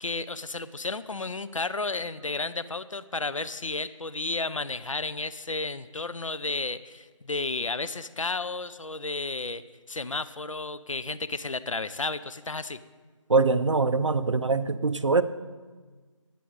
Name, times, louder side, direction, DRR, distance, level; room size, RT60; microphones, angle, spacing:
voice 1, 0.0-9.6 9.9-12.8, left 3 dB, 75° left, 14 dB, 0.7 m, -32 dB
voice 2, 13.3-15.2, right 4 dB, 65° right, 12 dB, 0.7 m, -23 dB
19.5 x 7.6 x 4.0 m, 1.4 s
figure-of-eight pair, 160°, 17 cm